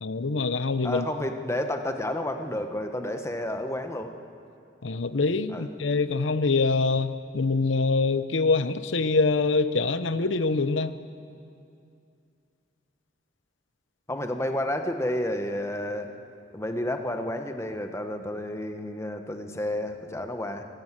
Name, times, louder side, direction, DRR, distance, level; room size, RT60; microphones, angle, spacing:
voice 1, 0.0-1.0 4.8-10.9, left 3 dB, 90° left, 13 dB, 0.8 m, -25 dB
voice 2, 0.8-4.1 5.5-5.7 14.1-16.1 16.5-20.7, left 1 dB, 15° left, 6 dB, 1.2 m, -30 dB
22.5 x 17.0 x 7.5 m, 2.5 s
head